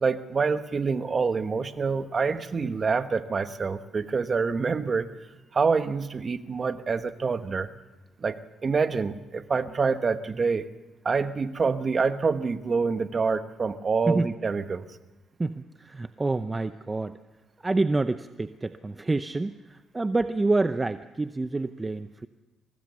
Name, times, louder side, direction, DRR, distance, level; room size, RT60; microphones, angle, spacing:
voice 1, 0.0-5.1 5.5-7.7 8.2-10.6 11.0-14.8, right 5 dB, 40° right, 10 dB, 1.2 m, -26 dB
voice 2, 15.4-17.2 17.6-22.3, right 2 dB, 20° right, 11 dB, 0.6 m, -27 dB
23.5 x 19.5 x 7.0 m, 1.1 s
cardioid pair, 90°, 0 cm